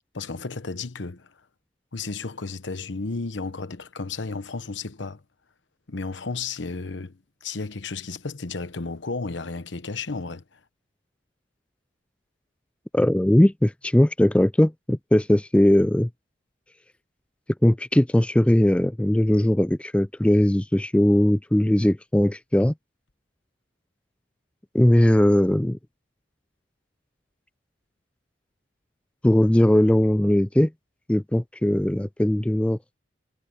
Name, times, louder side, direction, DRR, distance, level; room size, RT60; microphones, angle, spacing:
voice 1, 0.1-1.3 1.9-5.2 5.9-10.6, left 4 dB, 75° left, 1.0 m, -33 dB
voice 2, 12.9-16.1 17.6-22.7 24.7-25.8 29.2-30.7 31.1-32.8, left 1 dB, 5° left, 0.3 m, -19 dB
head